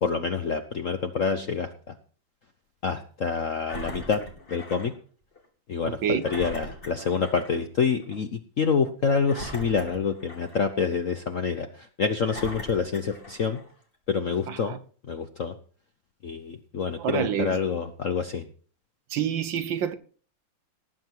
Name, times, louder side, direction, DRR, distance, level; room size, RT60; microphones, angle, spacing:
voice 1, 0.0-2.0 2.8-4.9 5.7-13.6 14.1-14.7 15.1-15.5 16.2-18.5, left 5 dB, 60° left, 0.8 m, -27 dB
Engine, 3.7-4.9 5.4-5.5 6.2-7.6 8.0-8.2 9.2-10.8 11.3-11.4 12.2-13.7 14.4-14.5, left 1 dB, 25° left, 2.2 m, -40 dB
voice 2, 5.9-6.2 14.5-14.8 17.0-17.6 19.1-19.9, right 8 dB, 65° right, 1.5 m, -28 dB
18.5 x 7.6 x 4.6 m
omnidirectional pair, 2.4 m